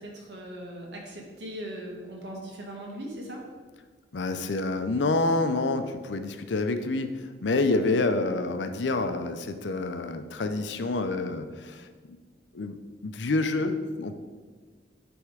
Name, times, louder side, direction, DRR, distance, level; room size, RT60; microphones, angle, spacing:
voice 1, 0.0-3.4, equal, 70° right, 0 dB, 1.6 m, -39 dB
voice 2, 4.1-11.9 12.5-12.8 13.0-14.2, left 2 dB, 80° left, 9 dB, 0.6 m, -27 dB
9.5 x 3.5 x 4.9 m, 1.5 s
head